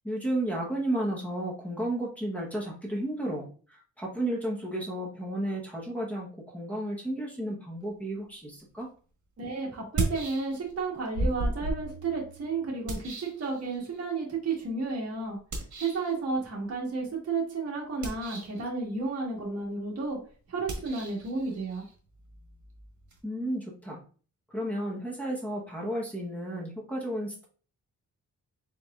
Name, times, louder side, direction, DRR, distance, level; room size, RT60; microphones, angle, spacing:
voice 1, 0.0-8.9 23.2-24.0 24.5-27.5, right 1 dB, 5° left, -3 dB, 0.9 m, -33 dB
sound 1, 8.8-8.9 9.8-10.8 11.1-14.0 15.5-16.1 17.9-18.7 20.6-23.2, right 2 dB, 85° right, 1.2 m, -35 dB
voice 2, 9.4-15.4 15.8-20.2 20.5-21.8, right 4 dB, 55° right, -3 dB, 1.5 m, -32 dB
4.6 x 3.8 x 2.4 m, 0.40 s
wide cardioid pair, 165°, 30 cm